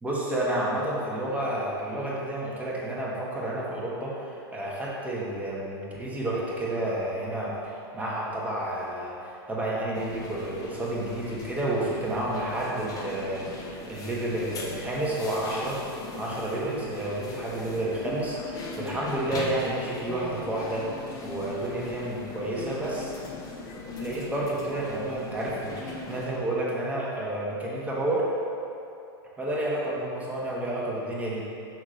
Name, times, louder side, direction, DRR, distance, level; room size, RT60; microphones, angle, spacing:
voice 1, 0.0-15.9 16.2-21.0 21.2-23.1 24.0-28.3 29.4-31.4, right 1 dB, 10° right, -5 dB, 1.3 m, -30 dB
sound 1, 9.9-26.3, left 3 dB, 25° left, 0.9 m, -39 dB
6.1 x 3.6 x 5.0 m, 2.7 s
hypercardioid pair, 120°, 13 cm